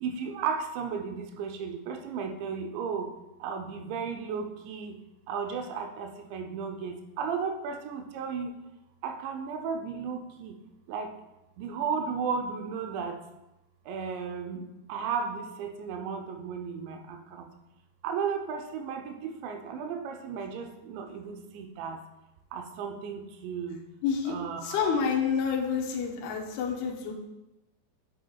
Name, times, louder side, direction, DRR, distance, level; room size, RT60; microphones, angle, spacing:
voice 1, 0.0-3.1 3.4-5.0 5.3-8.5 9.0-10.6 10.9-11.1 11.6-13.2 13.9-14.6 14.9-17.2 18.0-22.0 22.5-23.8 24.3-25.0, right 6 dB, 85° right, 4 dB, 3.1 m, -34 dB
voice 2, 24.0-24.3 24.6-27.1, left 6 dB, 75° left, 0 dB, 2.8 m, -28 dB
9.8 x 8.1 x 2.4 m, 0.96 s
omnidirectional pair, 5.0 m